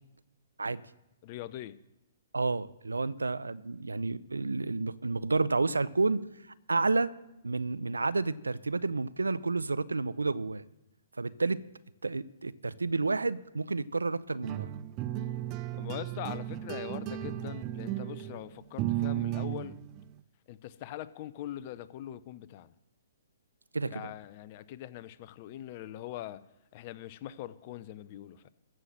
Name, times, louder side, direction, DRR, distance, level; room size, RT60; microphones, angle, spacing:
voice 1, 1.2-1.8 15.8-19.7 20.5-22.7 23.9-26.4 26.7-28.5, left 13 dB, 40° left, 15 dB, 0.7 m, -42 dB
voice 2, 2.3-6.2 6.7-7.1 7.4-10.6 11.2-11.6 12.0-14.7 23.7-24.1, right 3 dB, 85° right, 17 dB, 0.5 m, -30 dB
sound 1, 14.4-20.1, right 13 dB, 30° right, 0.5 m, -35 dB
14.0 x 5.8 x 7.6 m, 0.91 s
figure-of-eight pair, 125°, 0 cm